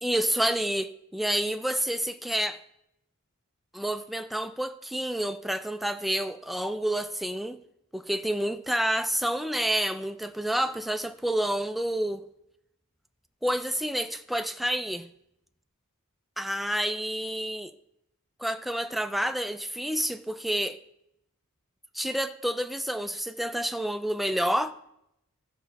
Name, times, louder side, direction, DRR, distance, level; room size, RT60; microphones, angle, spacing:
voice 1, 0.0-2.6 3.7-7.6 7.9-12.2 13.4-15.1 16.4-17.7 18.4-20.8 21.9-24.7, right 1 dB, ahead, 0.4 m, -29 dB
15.0 x 5.2 x 4.1 m
head